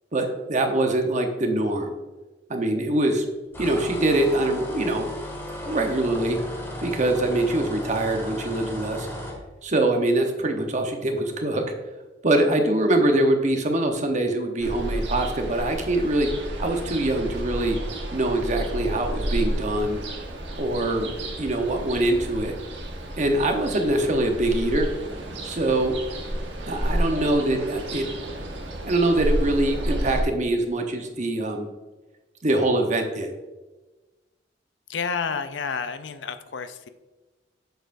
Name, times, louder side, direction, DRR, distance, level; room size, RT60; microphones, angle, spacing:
voice 1, 0.1-1.9 2.5-3.2 3.6-5.1 5.7-6.4 6.8-9.1 9.6-11.7 12.2-16.3 16.6-17.8 18.1-20.0 20.6-21.1 21.4-22.5 23.2-24.9 25.4-25.9 26.7-28.1 28.8-31.7 32.4-33.3, right 1 dB, 40° right, 4 dB, 0.9 m, -23 dB
sound 1, 3.5-9.4, left 1 dB, 15° left, 1.9 m, -35 dB
Ocean, 14.6-30.2, right 1 dB, 85° right, 1.4 m, -31 dB
voice 2, 34.9-36.9, left 5 dB, 80° left, 10 dB, 0.5 m, -30 dB
8.0 x 6.7 x 2.6 m, 1.2 s
head